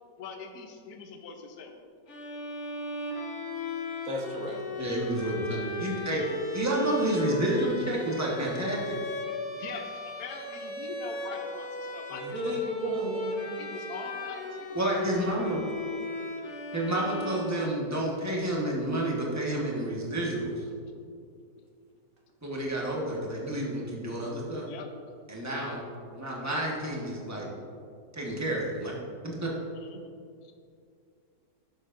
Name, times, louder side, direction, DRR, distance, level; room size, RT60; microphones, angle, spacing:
voice 1, 0.2-1.8 9.5-12.7 13.5-14.8 24.6-24.9 29.7-30.1 30.4-30.5, left 5 dB, 65° left, 3 dB, 1.3 m, -43 dB
Bowed string instrument, 2.1-18.2, left 1 dB, 45° left, 1.3 m, -36 dB
voice 2, 4.0-4.6 12.1-13.6, right 1 dB, 50° right, 0 dB, 1.5 m, -34 dB
voice 3, 4.8-6.2 6.5-9.0 14.7-15.6 16.7-20.6 22.4-24.7 25.3-25.8 26.1-27.5 28.1-28.9 29.2-29.5, right 1 dB, 10° right, -4 dB, 1.2 m, -30 dB
11.5 x 7.5 x 2.6 m, 2.4 s
omnidirectional pair, 1.9 m